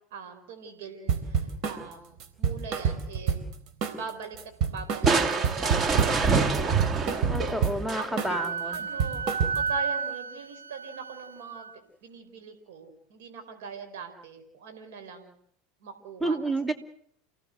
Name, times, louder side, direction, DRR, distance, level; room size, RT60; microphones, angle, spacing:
voice 1, 0.1-3.4 4.0-4.4 4.7-7.1 8.0-9.2 9.6-11.7 12.0-15.3 15.8-16.4, right 5 dB, 65° right, 7 dB, 4.7 m, -42 dB
sound 1, 1.1-1.8 2.2-3.5 3.8-4.1 4.4-6.3 6.5-7.8 8.2-8.4 8.7-9.8, right 6 dB, 50° right, 4.2 m, -28 dB
Crushing, 5.1-8.4, right 4 dB, 30° right, 2.4 m, -26 dB
voice 2, 7.3-8.9 16.2-16.7, right 2 dB, 5° right, 7 dB, 2.9 m, -30 dB
Wind instrument woodwind instrument, 8.3-11.7, right 5 dB, 90° right, 0.9 m, -32 dB
30.0 x 17.5 x 8.0 m, 0.65 s
hypercardioid pair, 80°, 0 cm